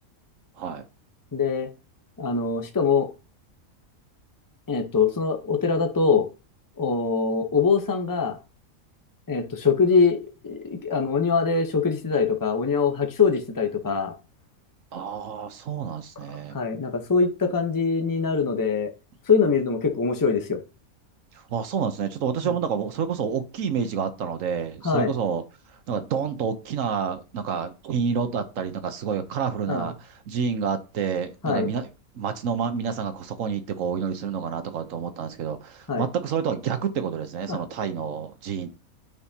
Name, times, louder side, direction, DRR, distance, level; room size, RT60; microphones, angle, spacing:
voice 1, 1.3-1.7 2.2-3.1 4.7-6.2 6.8-8.4 9.3-10.2 10.4-14.1 16.5-18.9 19.3-20.6 22.4-22.5 24.8-25.1 29.7-29.9 31.4-31.7 35.9-36.1 37.5-37.6, left 5 dB, 20° left, 0.7 m, -23 dB
voice 2, 14.9-16.5 21.5-25.4 25.9-29.9 30.3-31.9 32.1-38.8, right 6 dB, 65° right, 1.2 m, -28 dB
8.7 x 6.2 x 2.8 m
omnidirectional pair, 1.5 m